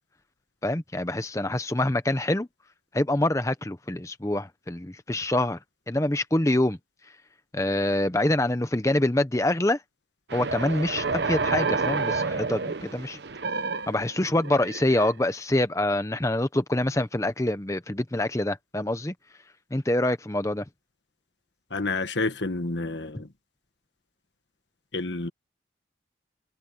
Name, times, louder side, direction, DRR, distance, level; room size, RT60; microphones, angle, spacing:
voice 1, 0.6-2.5 2.9-5.6 5.9-6.8 7.5-9.8 10.3-13.2 13.9-19.1 19.7-20.6, left 1 dB, 15° left, 0.8 m, -25 dB
sound 1, 10.3-15.3, right 4 dB, 70° right, 0.9 m, -29 dB
voice 2, 21.7-23.3 24.9-25.3, left 3 dB, 80° left, 1.7 m, -29 dB
head